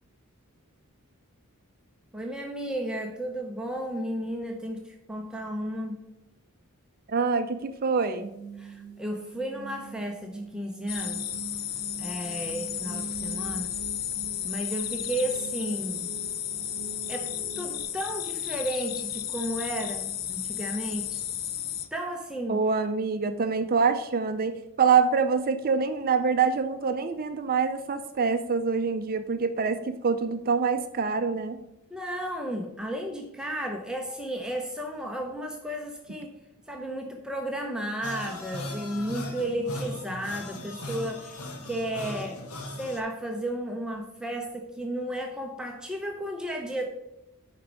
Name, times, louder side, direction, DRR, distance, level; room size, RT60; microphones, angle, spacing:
voice 1, 2.1-6.0 8.6-11.2 12.0-13.7 14.4-16.1 17.1-21.2 21.9-22.6 31.9-36.4 36.7-42.4 42.8-46.8, right 1 dB, 5° right, 1 dB, 0.7 m, -33 dB
voice 2, 7.1-8.3 22.5-31.6, right 5 dB, 40° right, 9 dB, 0.5 m, -25 dB
sound 1, 8.0-17.8, right 4 dB, 20° right, 3.1 m, -43 dB
sound 2, 10.9-21.9, left 10 dB, 45° left, 0.6 m, -33 dB
sound 3, 38.0-43.0, left 1 dB, 80° left, 1.2 m, -38 dB
6.3 x 5.2 x 6.2 m, 0.91 s
head